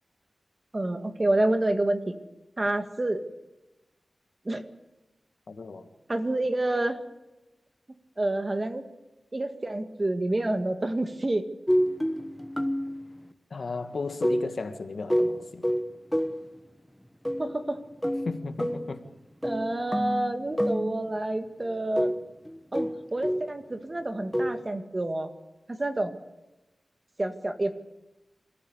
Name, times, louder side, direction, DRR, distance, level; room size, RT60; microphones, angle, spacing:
voice 1, 0.7-2.1 2.6-3.2 4.5-4.7 6.1-7.0 8.2-8.8 9.3-11.5 17.4-17.8 19.4-22.1 22.7-25.3 25.7-26.2 27.2-27.7, right 1 dB, 30° right, 7 dB, 1.9 m, -28 dB
voice 2, 5.5-5.9 13.5-15.6 18.3-19.0, left 4 dB, 65° left, 8 dB, 1.9 m, -35 dB
sound 1, 11.7-13.1 14.2-16.5 17.2-17.6 18.0-19.0 19.4-21.2 21.6-23.6 24.3-24.7, equal, 5° left, 1.3 m, -28 dB
27.0 x 15.0 x 8.4 m, 1.0 s
wide cardioid pair, 100°, 0 cm